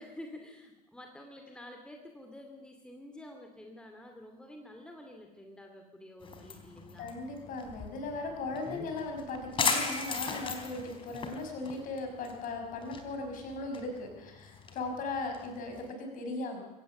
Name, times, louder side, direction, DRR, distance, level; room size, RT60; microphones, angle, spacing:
voice 1, 0.0-7.1, left 1 dB, 5° left, 4 dB, 2.4 m, -49 dB
sound 1, 6.2-15.9, left 4 dB, 25° left, 3.7 m, -38 dB
voice 2, 7.0-16.6, left 3 dB, 40° left, 4 dB, 5.6 m, -38 dB
24.0 x 17.0 x 6.6 m, 1.1 s
figure-of-eight pair, 75°, 21 cm